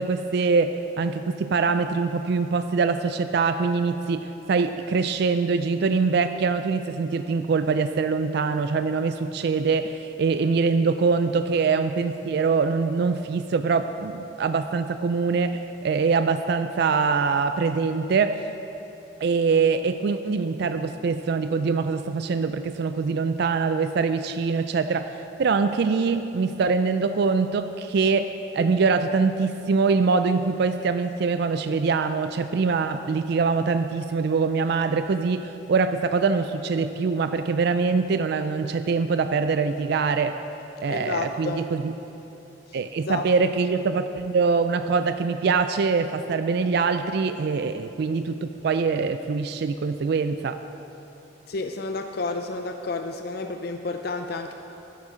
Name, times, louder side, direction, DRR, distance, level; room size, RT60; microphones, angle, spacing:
voice 1, 0.0-18.4 19.2-25.1 25.4-40.4 40.8-41.9 42.7-50.6, right 4 dB, 60° right, 9 dB, 0.3 m, -24 dB
voice 2, 40.9-41.6 42.7-42.8 43.1-43.2 51.5-54.5, left 3 dB, 55° left, 6 dB, 0.5 m, -30 dB
12.5 x 8.2 x 5.0 m, 3.0 s
head